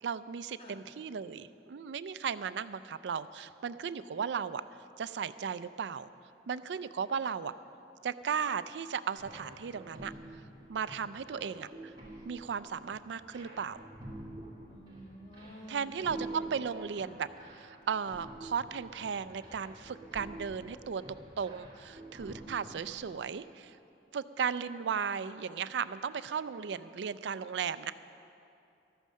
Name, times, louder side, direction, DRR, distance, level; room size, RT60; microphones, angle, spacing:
voice 1, 0.0-4.6 5.0-6.1 6.5-7.5 8.0-10.1 10.7-11.7 12.3-13.8 15.7-23.8 24.1-27.9, right 6 dB, 90° right, 15 dB, 0.4 m, -36 dB
sound 1, 9.2-23.0, right 1 dB, 25° right, 2.5 m, -48 dB
voice 2, 14.7-16.0 22.6-22.8, equal, 35° left, -1 dB, 1.6 m, -50 dB
13.0 x 9.2 x 6.3 m, 2.7 s
head